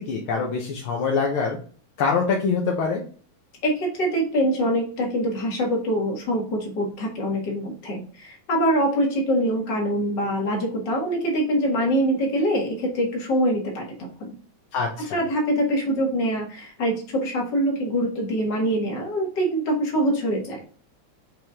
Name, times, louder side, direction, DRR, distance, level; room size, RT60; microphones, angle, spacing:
voice 1, 0.0-1.6 2.0-3.0 14.7-15.2, left 5 dB, 60° left, -1 dB, 1.5 m, -24 dB
voice 2, 3.6-14.3 15.1-20.6, equal, 40° left, 0 dB, 2.1 m, -24 dB
6.0 x 4.9 x 3.6 m, 0.42 s
omnidirectional pair, 3.3 m